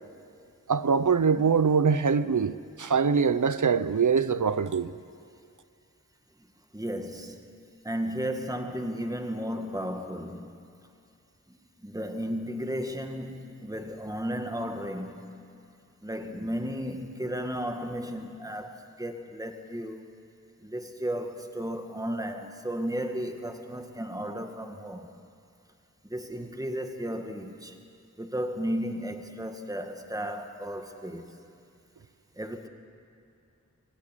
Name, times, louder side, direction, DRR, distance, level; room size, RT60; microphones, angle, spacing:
voice 1, 0.7-4.9, right 6 dB, 70° right, 0.7 m, -23 dB
voice 2, 6.7-7.5 7.8-10.5 11.5-15.5 16.0-20.1 20.6-25.1 26.1-27.8 28.2-31.4 32.4-32.7, equal, 10° right, 1.8 m, -34 dB
24.5 x 16.0 x 9.7 m
wide cardioid pair, 45°, 31 cm